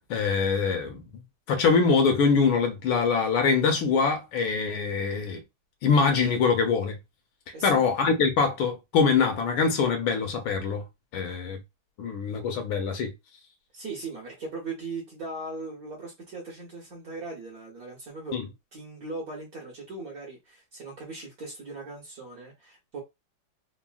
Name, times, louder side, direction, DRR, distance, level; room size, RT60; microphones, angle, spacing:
voice 1, 0.1-1.0 1.5-5.4 5.8-7.0 7.6-10.8 11.1-11.6 12.0-13.1 18.3-18.4, left 5 dB, 75° left, 1.4 m, -24 dB
voice 2, 13.7-18.4 18.7-23.0, right 3 dB, 55° right, 1.1 m, -39 dB
3.8 x 2.0 x 2.3 m
omnidirectional pair, 2.3 m